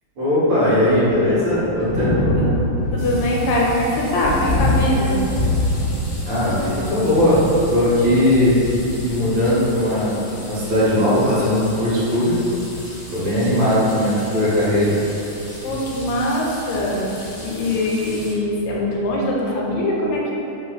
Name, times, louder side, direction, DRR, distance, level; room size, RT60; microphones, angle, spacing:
voice 1, 0.2-2.3 6.3-7.4 7.7-8.6 9.0-12.3 13.1-14.9, left 1 dB, 70° right, -8 dB, 1.5 m, -18 dB
Thunder, 0.7-18.7, left 1 dB, 25° right, 1.2 m, -27 dB
voice 2, 2.9-5.2 15.6-17.1 17.4-20.3, left 1 dB, 80° left, -3 dB, 1.5 m, -22 dB
sound 1, 3.0-18.3, left 1 dB, 60° left, 1.0 m, -39 dB
3.1 x 3.1 x 2.2 m, 3.0 s
omnidirectional pair, 2.4 m